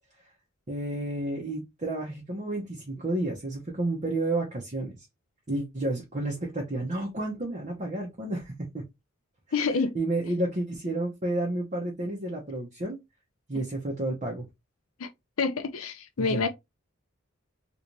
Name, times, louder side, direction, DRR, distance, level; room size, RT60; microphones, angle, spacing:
voice 1, 0.7-5.0 5.5-8.8 9.9-13.0 13.5-14.4 16.2-16.5, right 2 dB, 35° right, 0.9 m, -31 dB
voice 2, 9.5-10.0 15.0-15.1 15.4-16.5, left 4 dB, 75° left, 0.6 m, -27 dB
3.1 x 3.1 x 2.7 m
head